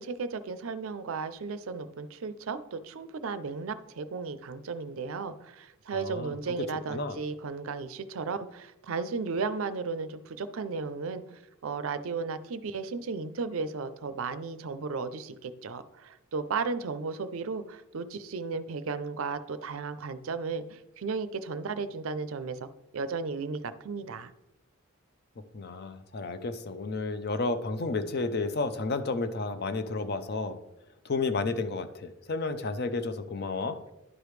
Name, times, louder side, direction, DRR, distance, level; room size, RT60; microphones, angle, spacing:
voice 1, 0.0-24.3, right 4 dB, 70° right, 13 dB, 0.5 m, -35 dB
voice 2, 5.9-7.2 25.5-30.6 31.0-33.8, left 3 dB, 50° left, 10 dB, 0.5 m, -32 dB
11.0 x 5.0 x 3.2 m, 0.93 s
head